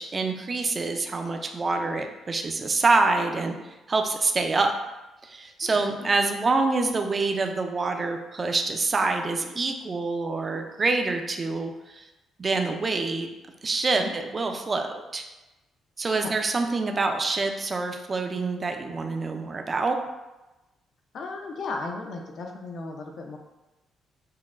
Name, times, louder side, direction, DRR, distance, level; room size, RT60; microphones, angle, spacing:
voice 1, 0.0-3.6 3.9-4.7 5.2-12.0 12.4-13.3 13.6-15.2 16.0-20.0, right 3 dB, 35° right, 4 dB, 0.4 m, -26 dB
voice 2, 5.6-6.1 14.0-14.1 16.1-16.4 21.1-23.4, left 3 dB, 60° left, 2 dB, 0.5 m, -36 dB
5.6 x 2.2 x 2.5 m, 1.0 s
cardioid pair, 90°, 0 cm